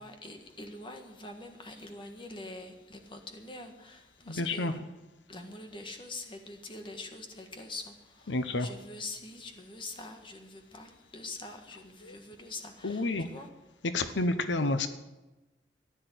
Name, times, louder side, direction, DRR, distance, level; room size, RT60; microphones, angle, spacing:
voice 1, 0.0-4.7 5.3-13.5, left 2 dB, 25° left, 1.7 m, -44 dB
voice 2, 4.3-4.8 8.3-8.7 12.0-12.1 12.8-13.3 13.9-14.9, left 2 dB, 90° left, 1.0 m, -30 dB
14.5 x 10.0 x 7.9 m
head